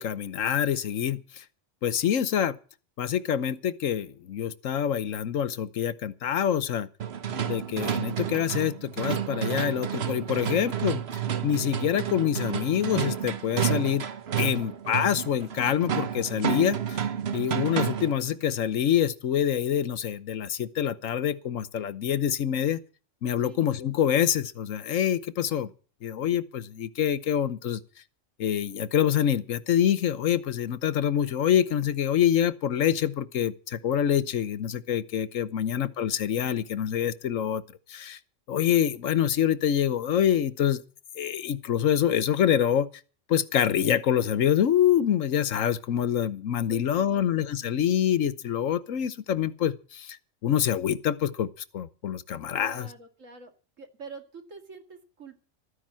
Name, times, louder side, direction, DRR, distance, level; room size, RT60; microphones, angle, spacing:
voice 1, 0.0-1.4 1.8-2.6 3.0-6.9 7.5-11.0 11.4-14.1 14.4-17.0 17.3-22.8 23.2-25.7 26.0-27.8 28.4-37.6 37.9-38.2 38.5-40.8 41.2-42.9 43.3-50.2 50.4-52.9, left 9 dB, 80° left, 1.3 m, -26 dB
sound 1, 7.0-18.2, right 8 dB, 55° right, 1.2 m, -30 dB
voice 2, 14.4-14.7 23.4-23.6 35.6-35.8 46.7-47.3 52.5-53.5 53.8-55.4, right 4 dB, 80° right, 2.6 m, -46 dB
13.5 x 10.0 x 7.4 m
omnidirectional pair, 1.3 m